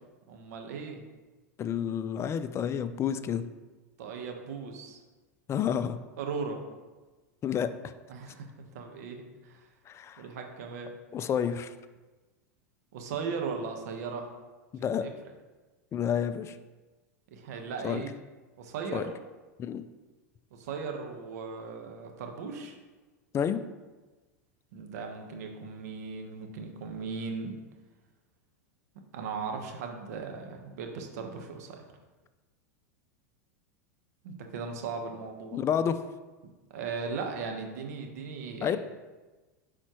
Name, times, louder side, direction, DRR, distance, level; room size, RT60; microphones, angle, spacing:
voice 1, 0.3-1.0 4.0-5.0 6.2-6.6 8.1-9.7 10.2-10.9 12.9-14.3 14.8-15.1 17.3-18.1 18.6-19.1 20.5-22.8 24.7-27.5 29.1-31.8 34.2-35.6 36.7-38.8, right 5 dB, 70° right, 3 dB, 1.2 m, -37 dB
voice 2, 1.6-3.5 5.5-6.0 7.4-7.9 9.9-10.3 11.1-11.7 14.7-15.1 15.9-16.6 17.8-18.0 18.9-19.0 19.6-19.8 23.3-23.6 35.5-36.0 38.6-38.8, left 8 dB, 30° left, 12 dB, 0.4 m, -29 dB
10.0 x 4.3 x 3.1 m, 1.2 s
hypercardioid pair, 95°, 9 cm